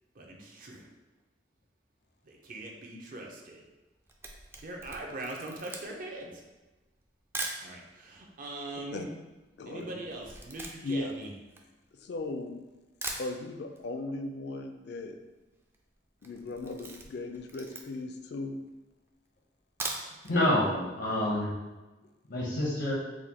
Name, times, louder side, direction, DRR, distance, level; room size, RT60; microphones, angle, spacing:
voice 1, 0.1-0.9 2.2-3.6 4.6-6.4 7.6-9.1 9.7-11.3, right 2 dB, 50° right, 0 dB, 0.6 m, -41 dB
Camera, 3.8-7.7 8.4-8.5 8.6-12.3 12.7-12.8 13.0-13.9 14.1-14.2 14.5-14.6 14.8-15.2 15.6-15.8 16.2-18.2 18.7-18.8 19.6-20.4 20.7-20.8 21.2-21.3, right 2 dB, 15° right, 0.3 m, -41 dB
voice 2, 9.6-10.0 10.8-11.1 12.0-12.6 13.2-15.1 16.2-18.6, left 2 dB, 70° left, 6 dB, 0.4 m, -37 dB
voice 3, 20.3-21.5 22.3-22.9, left 1 dB, 85° left, -5 dB, 0.8 m, -27 dB
4.7 x 2.1 x 2.8 m, 1.1 s
head